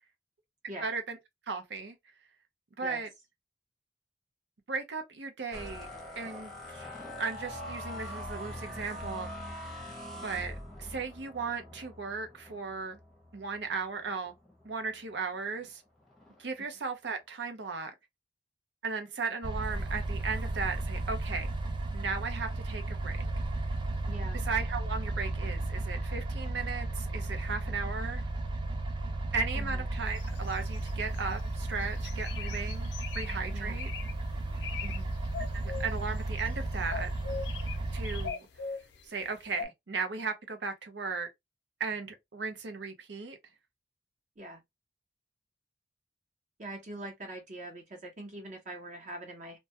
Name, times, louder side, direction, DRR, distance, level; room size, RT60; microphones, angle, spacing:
voice 1, 0.8-1.2 1.5-2.0 2.8-3.1 4.7-5.9 6.2-6.9 7.2-9.3 9.5-9.9 10.2-13.0 13.3-14.3 14.6-15.8 16.4-17.9 18.8-21.5 21.9-23.2 24.5-28.2 29.3-33.9 35.8-37.1 37.9-38.5 39.0-41.3 41.8-43.4, right 4 dB, 80° right, 0.6 m, -36 dB
sound 1, 5.5-14.9 15.4-15.7 16.0-16.5, left 1 dB, ahead, 0.7 m, -43 dB
sound 2, 19.4-38.3, right 2 dB, 25° right, 0.3 m, -34 dB
voice 2, 24.0-24.4 29.5-29.8 33.5-33.8 34.8-35.1 44.4-44.6 46.6-49.6, right 1 dB, 45° right, 0.8 m, -43 dB
sound 3, 30.2-31.4 31.8-33.4 33.8-34.1 34.5-35.0 35.2-36.5 36.9-39.0 39.6-39.7, left 6 dB, 85° left, 0.5 m, -40 dB
2.2 x 2.2 x 2.7 m
head